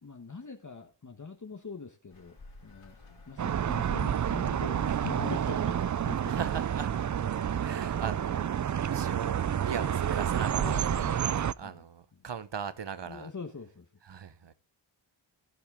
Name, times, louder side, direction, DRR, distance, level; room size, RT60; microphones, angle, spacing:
voice 1, 0.0-3.0 3.3-5.8 6.0-6.3 10.6-11.8 13.1-13.9, left 4 dB, 40° left, 1.3 m, -43 dB
sound 1, 2.1-10.4, left 3 dB, 75° left, 3.4 m, -54 dB
sound 2, 3.4-11.5, right 9 dB, 40° right, 0.4 m, -29 dB
voice 2, 6.2-6.9 7.5-8.6 8.9-10.8 11.1-11.2 11.6-13.3 14.0-14.5, right 7 dB, 60° right, 1.1 m, -39 dB
16.0 x 6.0 x 3.7 m
wide cardioid pair, 55°, 47 cm